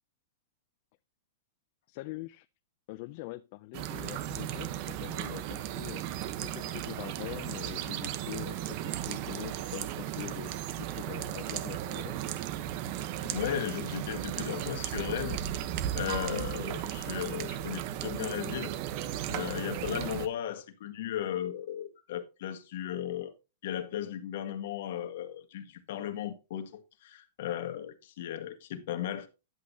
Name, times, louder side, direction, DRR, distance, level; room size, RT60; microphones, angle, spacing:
voice 1, 1.9-2.5 2.9-6.0 6.4-12.2, left 20 dB, 50° left, 0.4 m, -43 dB
sound 1, 3.7-20.3, right 12 dB, 45° right, 1.0 m, -35 dB
voice 2, 13.2-15.4 15.9-18.7 19.3-23.3 23.6-29.3, left 11 dB, 65° left, 1.6 m, -36 dB
10.5 x 8.2 x 2.8 m
hypercardioid pair, 145°, 0 cm